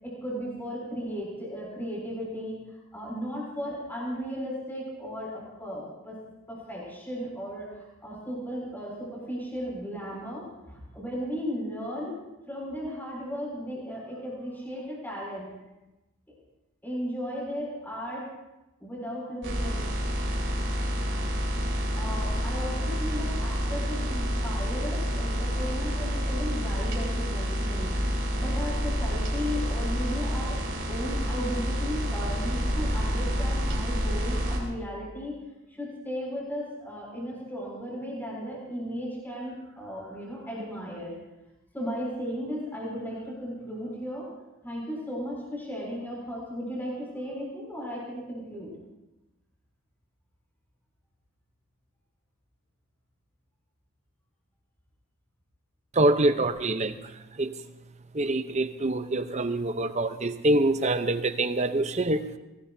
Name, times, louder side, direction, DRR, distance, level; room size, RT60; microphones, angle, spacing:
voice 1, 0.0-2.6 2.9-6.2 6.5-12.2 12.5-15.5 16.8-18.3 18.8-20.0 21.9-30.6 30.9-35.3 35.7-41.1 41.7-44.3 44.6-48.7, equal, 10° left, -4 dB, 6.9 m, -35 dB
sound 1, 19.4-34.6, equal, 55° right, 4.7 m, -28 dB
voice 2, 55.9-57.0 57.4-57.5 58.1-62.2, right 2 dB, 30° right, 10 dB, 0.7 m, -25 dB
23.5 x 20.0 x 2.7 m, 0.98 s
head